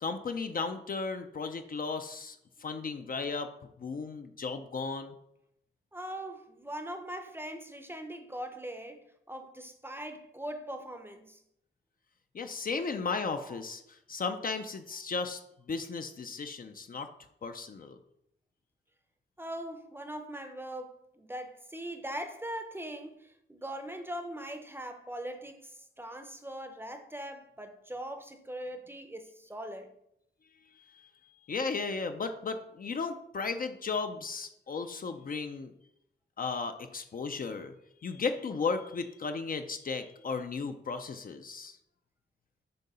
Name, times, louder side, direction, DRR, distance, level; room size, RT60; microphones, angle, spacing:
voice 1, 0.0-3.5 3.8-5.1 12.3-15.4 15.7-17.1 17.4-18.0 30.9-35.7 36.4-37.7 38.0-41.8, left 4 dB, 45° left, 0.5 m, -35 dB
voice 2, 5.9-11.4 13.5-13.6 19.4-29.9, right 1 dB, 10° right, 0.6 m, -41 dB
7.7 x 2.7 x 5.4 m
wide cardioid pair, 145°, 20 cm